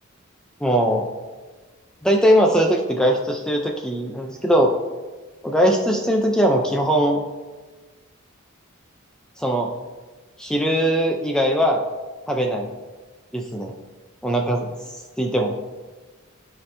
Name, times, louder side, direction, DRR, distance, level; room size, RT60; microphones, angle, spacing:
voice 1, 0.6-1.1 2.0-4.7 5.4-7.2 9.4-9.7 10.4-11.8 12.3-12.7 13.3-13.7 14.2-15.5, equal, 5° left, 1 dB, 0.5 m, -20 dB
12.0 x 4.3 x 2.6 m, 1.3 s
head